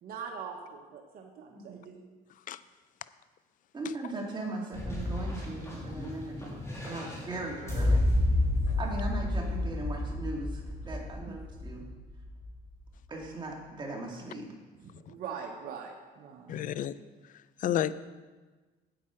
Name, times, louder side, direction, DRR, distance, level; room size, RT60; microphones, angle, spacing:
voice 1, 0.0-2.0 8.6-8.9 11.3-11.5 14.8-16.7, right 6 dB, 60° right, 1 dB, 1.0 m, -43 dB
voice 2, 1.5-1.8 3.7-8.0 8.8-11.8 13.1-14.5, right 2 dB, 25° right, -1 dB, 2.1 m, -39 dB
sound 1, 4.7-12.7, left 1 dB, 15° left, 3.0 m, -31 dB
voice 3, 16.5-17.0 17.6-18.0, left 11 dB, 50° left, 16 dB, 0.4 m, -30 dB
8.7 x 8.6 x 4.5 m, 1.3 s
cardioid pair, 110°, 17 cm